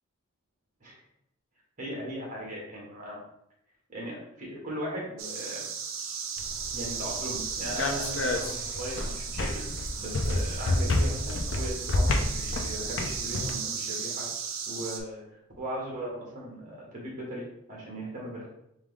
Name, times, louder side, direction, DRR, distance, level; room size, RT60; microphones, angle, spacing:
voice 1, 1.8-3.2 3.9-5.6 6.7-9.6 10.0-14.3 14.7-15.2 15.6-18.5, equal, 35° right, -4 dB, 1.4 m, -38 dB
sound 1, 5.2-15.0, right 6 dB, 60° right, 0.6 m, -36 dB
sound 2, 6.4-13.5, left 2 dB, 55° left, 0.5 m, -30 dB
3.5 x 3.5 x 3.6 m, 0.78 s
head